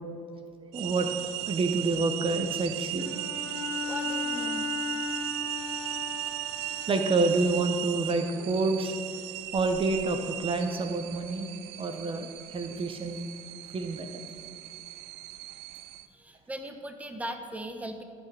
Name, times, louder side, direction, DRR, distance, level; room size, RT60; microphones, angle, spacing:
voice 1, 0.7-1.1 1.5-3.1 6.9-9.0 9.5-11.5 11.8-13.2 13.7-14.1, right 3 dB, 35° right, 6 dB, 0.9 m, -28 dB
sound 1, 0.7-16.1, right 15 dB, 75° right, 0.4 m, -37 dB
Bowed string instrument, 3.0-7.6, left 5 dB, 85° left, 1.5 m, -36 dB
voice 2, 3.8-4.7 16.1-18.0, right 1 dB, 10° right, 6 dB, 1.0 m, -39 dB
17.0 x 5.9 x 3.4 m, 2.3 s
hypercardioid pair, 70°, 16 cm